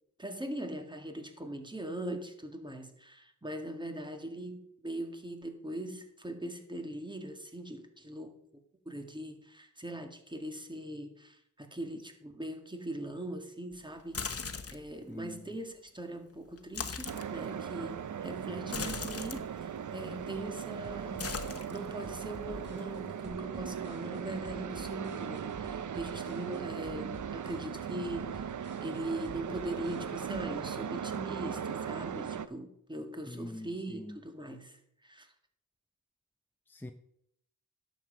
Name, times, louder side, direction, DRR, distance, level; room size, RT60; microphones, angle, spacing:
voice 1, 0.2-8.4 8.9-14.4 14.7-21.3 21.7-28.5 28.8-35.3, right 1 dB, 15° right, 6 dB, 2.0 m, -41 dB
sound 1, 14.0-14.9 16.6-17.3 18.7-19.4 20.2-20.6 20.9-22.1 22.5-23.3, left 5 dB, 45° left, 1.2 m, -39 dB
voice 2, 15.1-15.5 33.3-34.2 36.7-36.9, left 1 dB, 5° left, 5 dB, 0.8 m, -44 dB
sound 2, 17.1-32.5, right 8 dB, 70° right, 0.7 m, -38 dB
sound 3, 20.8-30.4, right 2 dB, 35° right, 3.7 m, -51 dB
11.5 x 7.8 x 5.0 m, 0.75 s
cardioid pair, 60°, 32 cm